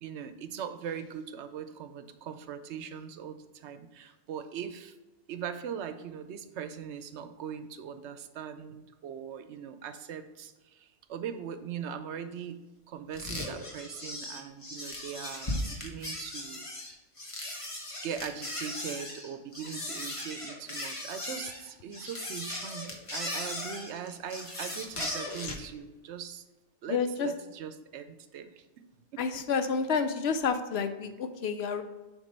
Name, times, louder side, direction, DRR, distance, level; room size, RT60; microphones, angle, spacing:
voice 1, 0.0-5.0 5.3-16.7 18.0-26.4 26.8-28.6 29.1-29.2, right 8 dB, 75° right, 10 dB, 0.9 m, -40 dB
sound 1, 13.1-25.7, left 1 dB, 30° left, 1.1 m, -38 dB
voice 2, 26.9-27.3 29.2-31.8, left 5 dB, 70° left, 9 dB, 0.8 m, -29 dB
7.3 x 3.6 x 5.2 m, 1.1 s
omnidirectional pair, 1.2 m